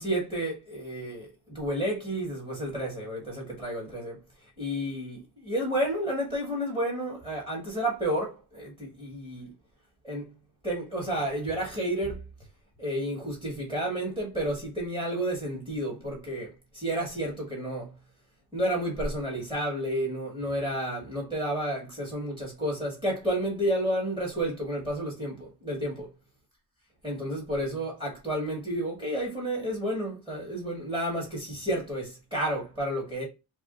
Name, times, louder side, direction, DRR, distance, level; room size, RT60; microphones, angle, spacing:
voice 1, 0.0-4.2 4.6-9.5 10.0-10.3 10.6-12.2 12.8-17.9 18.5-26.1 27.0-33.2, right 1 dB, 10° right, 1.7 m, -31 dB
4.7 x 2.0 x 3.8 m
cardioid pair, 115°, 38 cm